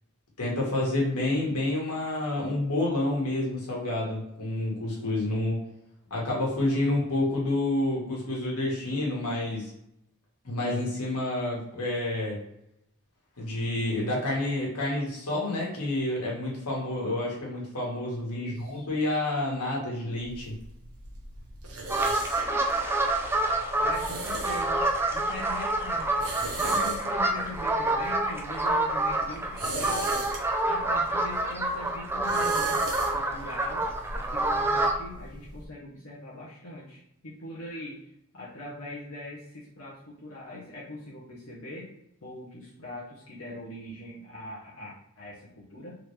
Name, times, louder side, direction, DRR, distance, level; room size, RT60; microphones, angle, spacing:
voice 1, 0.4-5.6 6.1-9.7 10.4-12.4 13.4-20.5, left 1 dB, 90° left, -3 dB, 1.5 m, -29 dB
voice 2, 18.3-18.9 23.8-30.3 30.7-32.9 33.1-33.8 34.1-38.0 38.3-41.9 42.2-46.0, left 1 dB, 65° left, -6 dB, 0.9 m, -41 dB
sound 1, 20.2-35.7, right 2 dB, 80° right, 1.0 m, -39 dB
sound 2, 21.9-34.9, right 2 dB, 10° right, 0.4 m, -27 dB
3.7 x 3.2 x 3.2 m, 0.79 s
head